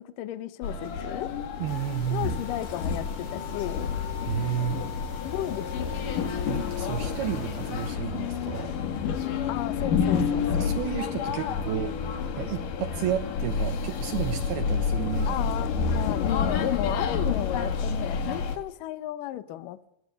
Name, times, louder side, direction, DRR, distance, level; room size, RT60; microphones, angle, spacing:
voice 1, 0.0-1.3 2.1-3.9 5.2-6.0 9.5-10.7 15.3-19.8, left 13 dB, 85° left, 12 dB, 1.9 m, -33 dB
sound 1, 0.6-18.6, left 6 dB, 55° left, 3.0 m, -29 dB
voice 2, 1.6-2.3 4.3-4.8 6.5-8.8 10.5-12.0 12.4-15.5 15.8-16.1, right 10 dB, 70° right, 9 dB, 2.6 m, -32 dB
sound 2, 1.7-8.0, left 2 dB, 25° left, 5.8 m, -47 dB
27.5 x 19.5 x 6.6 m, 0.80 s
omnidirectional pair, 5.4 m